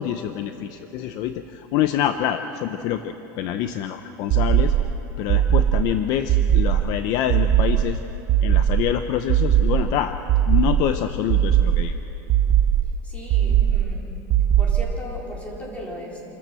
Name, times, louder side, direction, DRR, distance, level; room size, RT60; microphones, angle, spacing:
voice 1, 0.0-4.7 5.2-8.0 8.4-10.1 10.5-12.0, left 10 dB, 50° left, 9 dB, 0.7 m, -26 dB
sound 1, 4.3-4.9 5.3-5.9 6.3-6.9 7.3-7.9 8.3-8.9 9.3-9.9 10.3-10.9 11.3-11.9 12.3-12.9 13.3-13.9 14.3-14.9, right 10 dB, 35° right, 0.7 m, -19 dB
voice 2, 13.0-14.0 14.6-16.2, equal, 15° left, -3 dB, 4.4 m, -36 dB
27.5 x 14.0 x 7.8 m, 3.0 s
supercardioid pair, 165°, 8 cm